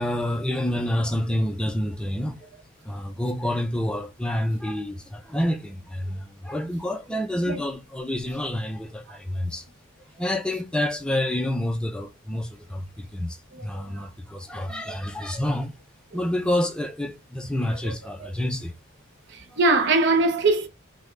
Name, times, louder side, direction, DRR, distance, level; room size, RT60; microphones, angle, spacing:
voice 1, 0.0-2.5 2.8-9.7 10.1-15.7 16.1-18.7 19.5-19.6, left 1 dB, 5° left, 0.3 m, -28 dB
voice 2, 19.6-20.7, right 3 dB, 50° right, 0.7 m, -21 dB
3.6 x 2.1 x 3.1 m
head